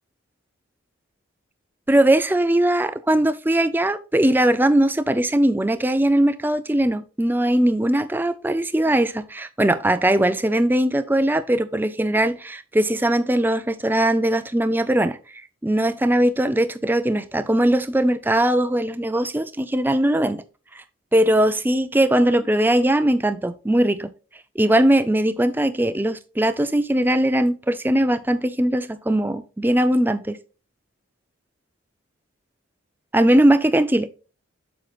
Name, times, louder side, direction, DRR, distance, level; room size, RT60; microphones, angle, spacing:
voice 1, 1.9-15.2 15.6-20.4 20.7-20.8 21.1-24.1 24.6-30.4 33.1-34.1, right 1 dB, 10° right, 0.4 m, -20 dB
7.5 x 6.4 x 2.4 m
head